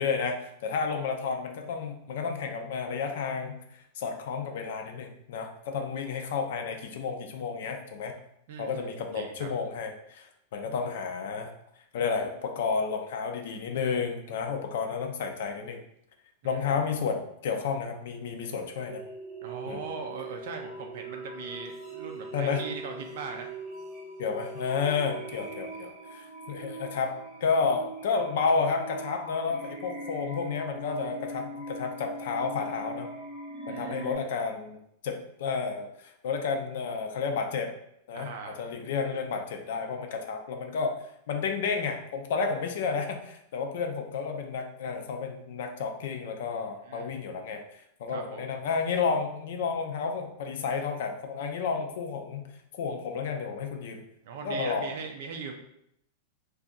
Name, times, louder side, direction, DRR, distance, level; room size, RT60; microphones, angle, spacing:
voice 1, 0.0-3.6 4.0-8.1 8.6-11.5 11.9-15.8 16.4-19.0 19.7-19.8 22.3-22.6 24.2-27.1 27.4-33.1 33.7-37.7 38.1-41.0 41.3-54.0 54.4-54.9, left 5 dB, 60° left, 4 dB, 0.4 m, -31 dB
voice 2, 8.5-9.5 16.4-16.8 19.4-23.5 33.7-34.0 38.1-38.6 46.8-47.1 48.1-48.5 54.2-55.6, right 5 dB, 55° right, 3 dB, 0.4 m, -40 dB
sound 1, 18.9-34.1, right 2 dB, 20° right, 0.7 m, -41 dB
2.6 x 2.4 x 3.7 m, 0.75 s
supercardioid pair, 175°, 0 cm